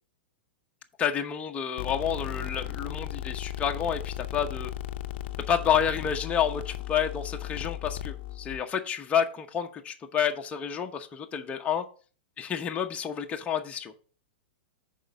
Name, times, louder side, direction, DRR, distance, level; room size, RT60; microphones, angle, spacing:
voice 1, 1.0-4.7 5.5-11.8 12.4-13.9, left 8 dB, 20° left, 3 dB, 0.9 m, -29 dB
sound 1, 1.8-8.6, left 13 dB, 60° left, 0.6 m, -36 dB
6.4 x 4.5 x 6.2 m, 0.39 s
hypercardioid pair, 130°, 6 cm